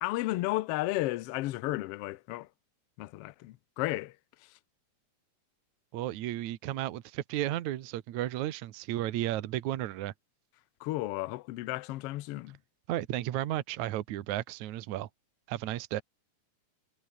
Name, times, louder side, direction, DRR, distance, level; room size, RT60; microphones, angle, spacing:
voice 1, 0.0-2.5 3.0-4.2 10.8-12.6, left 18 dB, 85° left, 1.3 m, -33 dB
voice 2, 5.9-10.1 12.9-15.1 15.5-16.0, right 14 dB, 70° right, 2.4 m, -33 dB
omnidirectional pair, 3.5 m